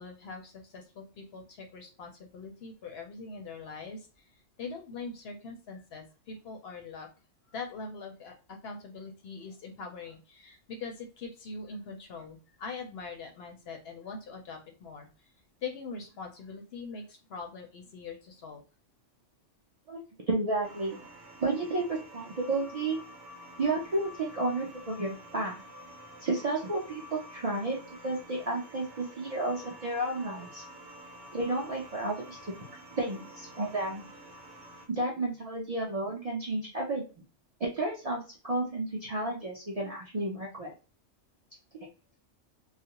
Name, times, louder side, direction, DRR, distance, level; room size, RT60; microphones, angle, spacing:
voice 1, 0.0-4.3 4.6-7.1 7.5-15.3 15.6-18.6, left 4 dB, 65° left, 3 dB, 0.7 m, -42 dB
voice 2, 20.3-21.0 21.4-23.0 23.6-25.6 26.2-30.6 31.3-32.5 33.0-34.0 34.9-37.1 37.6-40.7, right 2 dB, 50° right, -3 dB, 0.4 m, -32 dB
sound 1, 20.6-34.9, equal, 75° right, 1.0 m, -49 dB
2.4 x 2.1 x 2.8 m, 0.33 s
omnidirectional pair, 1.3 m